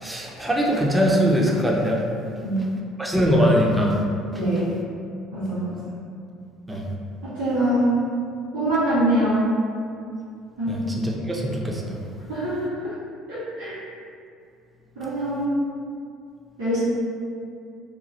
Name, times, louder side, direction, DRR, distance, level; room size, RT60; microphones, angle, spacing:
voice 1, 0.0-2.0 3.0-4.0 6.7-6.8 10.7-12.0, equal, 10° right, -2 dB, 0.5 m, -21 dB
voice 2, 4.3-4.7 5.3-5.8 7.2-8.0 8.5-9.5 10.6-10.9 12.3-12.9 13.3-13.7 14.9-15.5 16.6-16.8, right 1 dB, 65° right, -15 dB, 1.5 m, -24 dB
3.0 x 2.3 x 2.8 m, 2.4 s
figure-of-eight pair, 55°, 0 cm